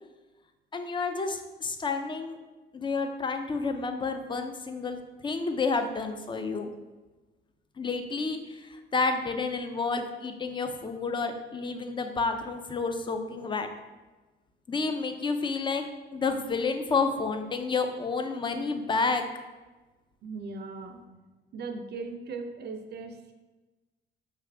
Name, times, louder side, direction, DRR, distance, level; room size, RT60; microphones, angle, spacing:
voice 1, 0.7-2.4 2.7-6.7 7.8-13.7 14.7-15.8 16.1-19.2, left 4 dB, 25° left, 6 dB, 0.4 m, -30 dB
voice 2, 20.2-21.0 21.5-23.3, right 4 dB, 55° right, 6 dB, 0.5 m, -38 dB
5.1 x 2.5 x 3.3 m, 1.2 s
cardioid pair, 90°, 20 cm